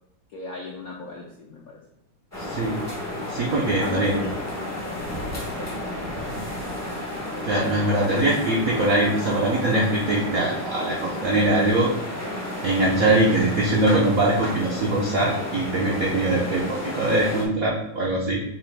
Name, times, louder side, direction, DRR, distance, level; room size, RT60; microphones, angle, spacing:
voice 1, 0.3-1.8 3.8-5.8, left 3 dB, 70° left, -3 dB, 0.8 m, -38 dB
sound 1, 2.3-17.4, left 1 dB, 25° left, 0.3 m, -32 dB
voice 2, 2.4-2.8 3.3-4.2 7.4-11.9 12.6-18.4, right 2 dB, 75° right, -2 dB, 0.8 m, -22 dB
4.9 x 3.1 x 3.4 m, 0.82 s
omnidirectional pair, 2.3 m